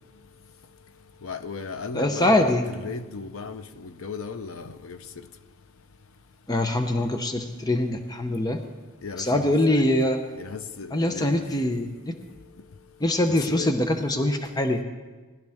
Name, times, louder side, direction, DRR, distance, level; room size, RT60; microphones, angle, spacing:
voice 1, 1.2-5.0 9.0-9.8 10.4-11.4 13.3-13.7, left 5 dB, 85° left, 0.7 m, -36 dB
voice 2, 1.9-2.6 6.5-8.6 9.2-10.2 10.9-12.1 13.0-14.8, left 1 dB, 20° left, 0.7 m, -23 dB
19.5 x 12.0 x 3.5 m
head